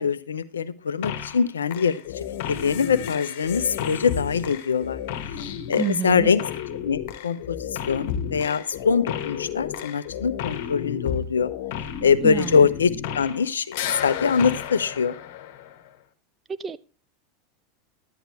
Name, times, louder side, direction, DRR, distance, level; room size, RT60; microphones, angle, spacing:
voice 1, 0.0-5.0 5.4-6.4 6.8-11.5 12.0-15.1, left 6 dB, 85° left, 14 dB, 0.8 m, -23 dB
sound 1, 1.0-1.4 1.7-13.5 13.7-15.9, left 9 dB, 60° left, 1.8 m, -32 dB
voice 2, 5.8-6.3 12.2-12.7 16.6-16.8, right 7 dB, 25° right, 15 dB, 0.7 m, -28 dB
12.0 x 10.0 x 3.4 m, 0.34 s
hypercardioid pair, 90°, 0 cm